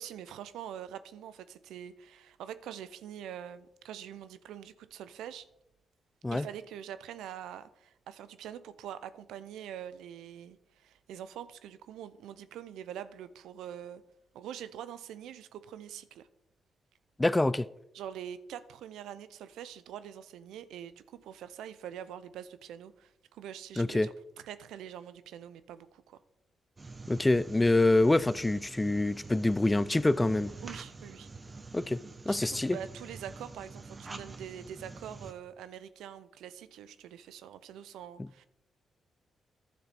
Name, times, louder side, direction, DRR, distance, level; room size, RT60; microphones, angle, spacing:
voice 1, 0.0-5.5 6.3-14.0 14.3-16.3 17.9-24.1 24.4-26.2 30.6-31.3 32.3-38.5, right 10 dB, 85° right, 0.5 m, -44 dB
voice 2, 17.2-17.7 23.8-24.1 27.1-30.5 31.7-32.8, left 2 dB, 20° left, 0.4 m, -26 dB
sound 1, 26.8-35.3, right 3 dB, 35° right, 1.0 m, -47 dB
11.5 x 6.5 x 4.1 m
supercardioid pair, 55°, 0 cm